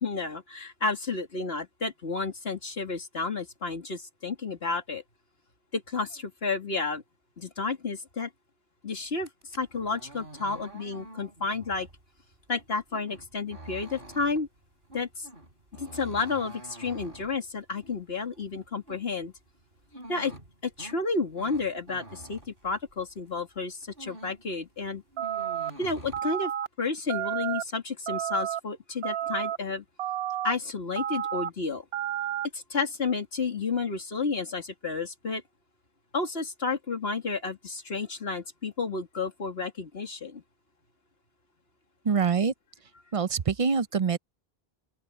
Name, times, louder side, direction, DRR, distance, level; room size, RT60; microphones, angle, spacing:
voice 1, 0.0-5.0 5.7-7.0 7.4-8.3 8.8-11.9 12.5-14.5 14.9-15.3 15.8-19.3 20.1-20.3 20.6-25.0 25.8-26.5 26.8-29.8 30.4-31.8 32.5-35.4 36.1-40.4, left 4 dB, 75° left, 2.7 m, -31 dB
sound 1, 9.1-23.2 23.6-24.5 24.8-26.2, right 1 dB, 60° right, 3.9 m, -47 dB
sound 2, 25.2-25.7 26.1-26.7 27.1-27.6 28.1-28.6 29.0-29.6 30.0-30.5 31.0-31.5 31.9-32.5, right 11 dB, 75° right, 0.8 m, -31 dB
voice 2, 42.0-42.5 43.1-44.2, right 5 dB, 40° right, 0.6 m, -25 dB
open air
omnidirectional pair, 1.0 m